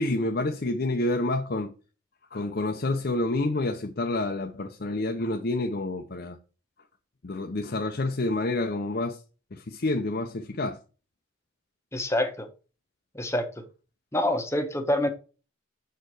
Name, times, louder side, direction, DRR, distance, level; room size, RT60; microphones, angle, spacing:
voice 1, 0.0-1.7 2.3-6.4 7.2-9.2 9.5-10.8, left 2 dB, 50° left, 0.7 m, -28 dB
voice 2, 11.9-12.5 13.1-13.5 14.1-15.1, left 1 dB, 15° left, 1.0 m, -26 dB
6.6 x 4.5 x 4.8 m
head